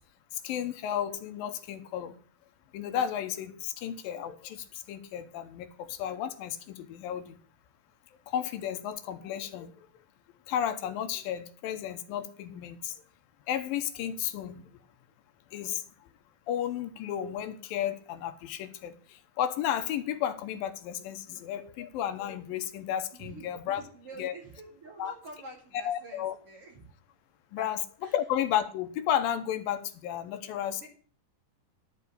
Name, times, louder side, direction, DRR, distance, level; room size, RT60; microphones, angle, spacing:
voice 1, 0.4-2.1 2.7-7.4 8.3-9.7 10.5-12.9 13.5-14.6 15.5-15.8 16.5-23.8 24.2-24.3 25.0-25.1 25.8-26.4 27.5-27.8 28.1-30.9, left 10 dB, 80° left, 9 dB, 2.5 m, -33 dB
voice 2, 23.1-26.9 27.6-27.7 28.0-28.1 30.6-30.9, right 2 dB, 45° right, 0 dB, 3.1 m, -47 dB
11.5 x 4.9 x 8.3 m, 0.43 s
omnidirectional pair, 4.1 m